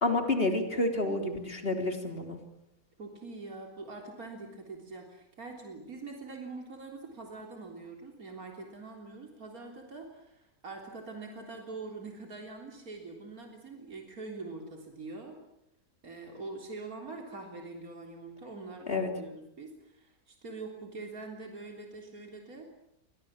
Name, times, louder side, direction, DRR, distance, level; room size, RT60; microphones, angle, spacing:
voice 1, 0.0-2.4 18.9-19.1, left 2 dB, 40° left, 4 dB, 3.9 m, -29 dB
voice 2, 3.0-15.4 16.0-22.7, right 3 dB, 75° right, 2 dB, 4.0 m, -44 dB
30.0 x 24.5 x 7.5 m, 0.80 s
omnidirectional pair, 1.5 m